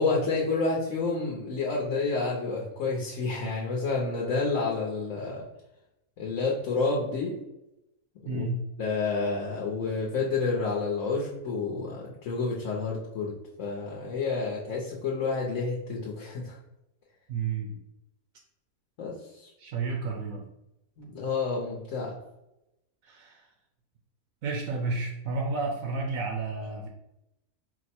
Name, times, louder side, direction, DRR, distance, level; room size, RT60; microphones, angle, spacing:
voice 1, 0.0-5.4 6.2-7.4 8.2-8.4 8.8-16.6 19.0-19.5 21.0-22.1, left 4 dB, 65° left, -3 dB, 1.0 m, -29 dB
voice 2, 8.3-8.6 17.3-17.8 19.6-20.4 23.0-23.5 24.4-26.9, right 3 dB, 70° right, 1 dB, 0.9 m, -31 dB
4.6 x 2.1 x 4.3 m, 0.90 s
omnidirectional pair, 1.6 m